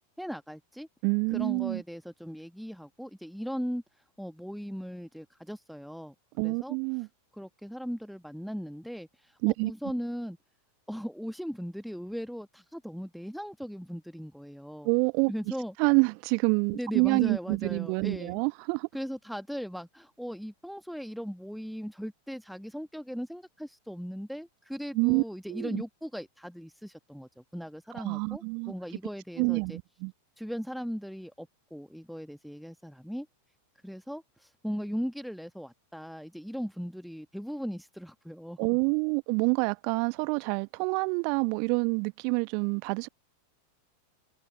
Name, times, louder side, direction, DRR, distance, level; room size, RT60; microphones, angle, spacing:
voice 1, 0.2-0.9 1.3-3.8 4.2-6.8 7.3-10.4 10.9-14.9 15.3-15.7 16.7-18.4 18.9-29.8 30.4-33.3 33.8-38.8, equal, ahead, 1.3 m, -38 dB
voice 2, 1.0-1.8 6.4-7.1 9.4-9.7 14.8-15.3 15.8-18.9 24.9-25.2 25.5-25.8 27.9-28.7 29.4-30.1 38.6-43.1, right 39 dB, 45° right, 1.1 m, -27 dB
figure-of-eight pair, 90°, 0 cm